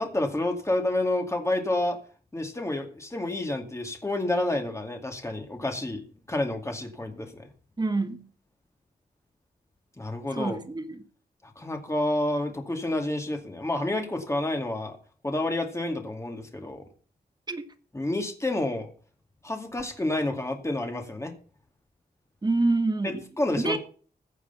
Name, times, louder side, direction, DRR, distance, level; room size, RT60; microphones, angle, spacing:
voice 1, 0.0-2.0 2.3-7.5 10.0-10.6 11.6-15.0 15.2-16.8 17.9-18.9 19.4-21.3 23.0-23.8, left 1 dB, 15° left, 2.3 m, -29 dB
voice 2, 7.8-8.2 10.4-11.0 17.5-17.6 22.4-23.2 23.6-23.8, right 3 dB, 25° right, 1.6 m, -27 dB
15.5 x 8.1 x 5.7 m
wide cardioid pair, 145°, 16 cm